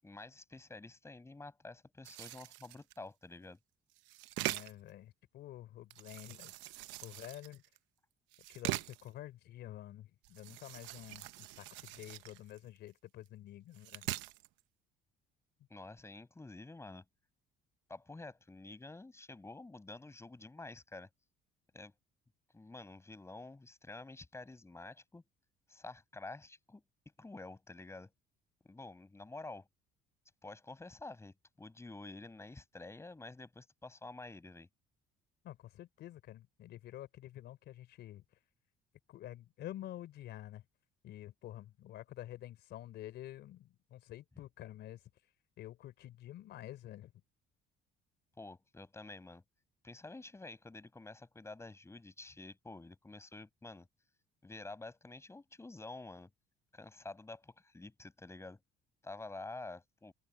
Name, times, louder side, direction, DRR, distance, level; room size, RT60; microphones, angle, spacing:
voice 1, 0.0-3.6 15.7-17.0 17.9-21.1 21.7-21.9 22.5-25.2 25.7-26.8 27.2-28.1 28.6-29.7 30.4-34.7 48.4-49.4 49.8-53.9 54.4-56.3 56.7-58.6 59.0-60.1, left 2 dB, 15° left, 6.8 m, -49 dB
sound 1, 2.0-3.0 4.0-4.9 5.9-7.8 8.3-9.1 10.2-12.8 13.3-13.4 13.7-14.5, right 19 dB, 90° right, 0.9 m, -42 dB
voice 2, 4.4-6.5 7.0-7.6 8.5-14.1 35.4-38.2 39.1-40.6 41.0-45.0 45.6-47.1, left 13 dB, 70° left, 3.7 m, -49 dB
open air
cardioid pair, 110°, 19 cm